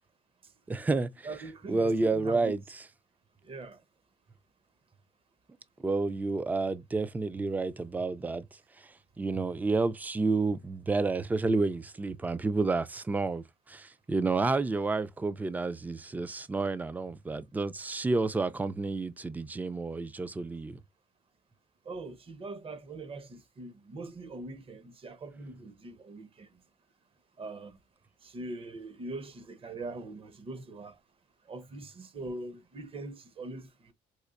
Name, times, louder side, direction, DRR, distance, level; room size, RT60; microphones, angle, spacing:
voice 1, 0.7-1.3 1.7-2.6 5.8-8.5 8.8-8.9 9.2-20.8, right 3 dB, 10° right, 0.3 m, -30 dB
voice 2, 1.2-2.5 3.4-3.8 8.2-8.3 21.8-26.6 27.4-27.8 28.2-31.0 31.5-33.9, right 2 dB, 35° right, 0.7 m, -42 dB
4.2 x 2.5 x 2.4 m
cardioid pair, 110°, 17 cm